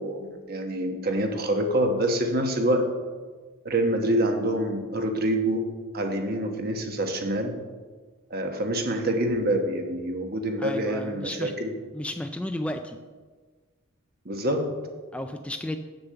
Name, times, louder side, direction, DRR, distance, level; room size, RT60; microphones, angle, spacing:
voice 1, 0.0-2.8 3.6-7.5 8.3-11.7 14.2-14.7, right 1 dB, 45° right, 4 dB, 1.2 m, -26 dB
voice 2, 10.6-11.5 11.9-13.0 15.1-15.8, left 1 dB, 5° left, 6 dB, 0.3 m, -33 dB
8.1 x 6.9 x 6.8 m, 1.4 s
head